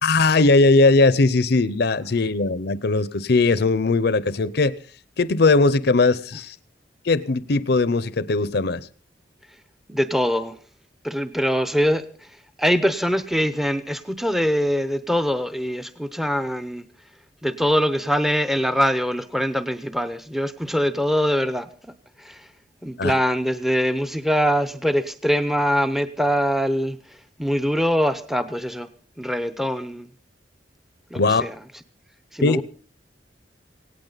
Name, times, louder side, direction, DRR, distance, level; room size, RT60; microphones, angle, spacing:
voice 1, 0.0-4.7 5.2-6.6 7.0-8.9 23.0-23.1 31.2-31.4 32.4-32.6, left 3 dB, 60° left, 0.7 m, -19 dB
voice 2, 9.9-10.6 11.0-16.9 17.4-21.7 22.2-22.5 22.8-28.9 29.2-30.1 31.1-31.6 32.3-32.6, equal, ahead, 0.7 m, -23 dB
18.0 x 17.5 x 4.0 m
head